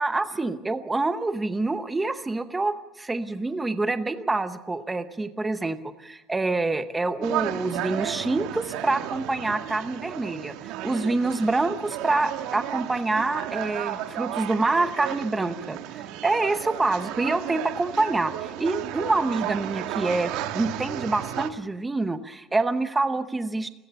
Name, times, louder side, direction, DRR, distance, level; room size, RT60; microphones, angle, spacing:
voice 1, 0.0-23.7, right 2 dB, 10° right, 10 dB, 0.8 m, -26 dB
sound 1, 7.2-21.5, right 12 dB, 85° right, 1.3 m, -33 dB
30.0 x 15.0 x 7.0 m, 1.0 s
cardioid pair, 180°, 0 cm